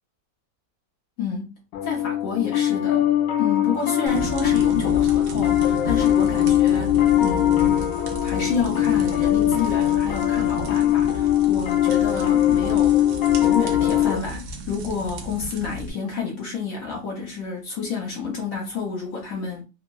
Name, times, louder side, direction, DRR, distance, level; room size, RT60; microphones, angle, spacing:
voice 1, 1.2-1.6 1.8-3.1 3.4-7.9 8.2-13.1 13.4-19.6, left 5 dB, 60° left, 0.9 m, -29 dB
Piano, 1.7-14.2, left 12 dB, 85° left, 1.4 m, -21 dB
sound 1, 4.1-15.9, equal, 65° right, 1.0 m, -34 dB
3.6 x 2.0 x 2.3 m
omnidirectional pair, 2.1 m